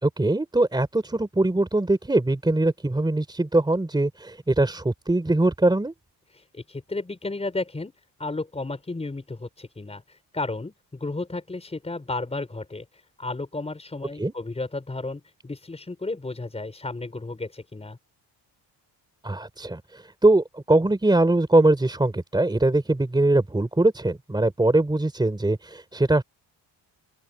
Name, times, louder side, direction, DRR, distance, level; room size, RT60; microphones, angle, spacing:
voice 1, 0.0-5.9 14.2-14.3 19.2-26.2, right 2 dB, 10° right, 3.5 m, -22 dB
voice 2, 6.3-7.9 8.2-18.0, left 2 dB, 15° left, 5.1 m, -33 dB
open air
cardioid pair, 165°, 42 cm